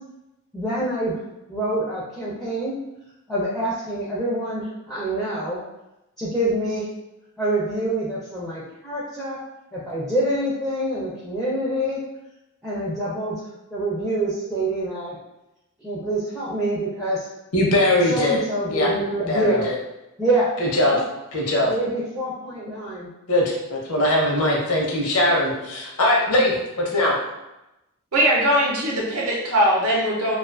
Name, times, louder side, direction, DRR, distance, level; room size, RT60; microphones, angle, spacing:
voice 1, 0.5-1.2 1.5-2.7 3.3-5.6 6.2-6.8 7.4-9.4 9.7-12.0 12.6-13.4 13.7-15.1 15.8-17.3 18.1-19.7 20.2-20.5 20.8-21.0 21.7-23.1, right 1 dB, ahead, -8 dB, 0.4 m, -26 dB
voice 2, 17.5-18.4 18.7-18.9 19.3-19.7 20.6-21.0 21.3-21.7 23.3-27.2, left 1 dB, 90° left, -2 dB, 0.7 m, -21 dB
voice 3, 28.1-30.4, equal, 80° right, -4 dB, 0.7 m, -20 dB
2.4 x 2.3 x 2.3 m, 0.93 s
head